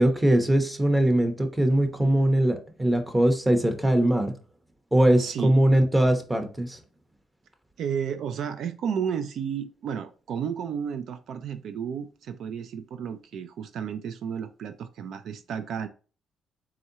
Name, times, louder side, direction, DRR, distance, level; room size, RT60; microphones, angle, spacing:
voice 1, 0.0-4.3 4.9-6.8, right 1 dB, 10° right, 0.9 m, -21 dB
voice 2, 5.2-5.6 7.8-15.9, right 7 dB, 70° right, 0.3 m, -32 dB
4.2 x 3.7 x 2.8 m
cardioid pair, 90°, 0 cm